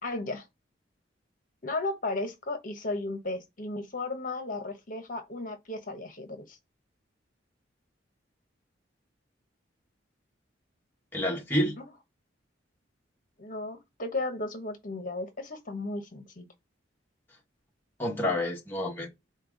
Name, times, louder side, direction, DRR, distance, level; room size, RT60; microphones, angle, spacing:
voice 1, 0.0-0.5 1.6-6.6 13.4-16.5, left 2 dB, 45° left, 1.1 m, -35 dB
voice 2, 11.1-11.8 18.0-19.1, left 1 dB, 10° left, 1.4 m, -28 dB
4.5 x 4.2 x 5.2 m
head